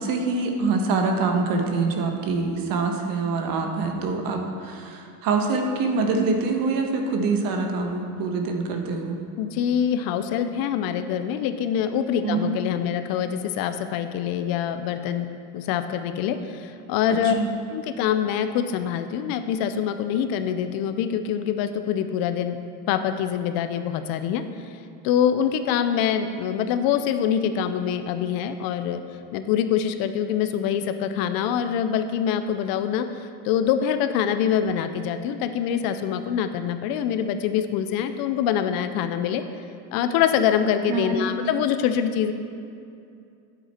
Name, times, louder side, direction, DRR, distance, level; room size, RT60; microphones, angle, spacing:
voice 1, 0.0-9.2 12.2-12.5 17.2-17.5 40.9-41.2, right 3 dB, 50° right, 3 dB, 1.2 m, -25 dB
voice 2, 9.4-15.3 15.5-17.3 17.7-22.6 22.9-24.4 25.0-29.0 29.3-39.4 39.9-42.3, left 9 dB, 50° left, 9 dB, 0.6 m, -25 dB
9.5 x 8.0 x 4.3 m, 2.5 s
supercardioid pair, 140°, 45 cm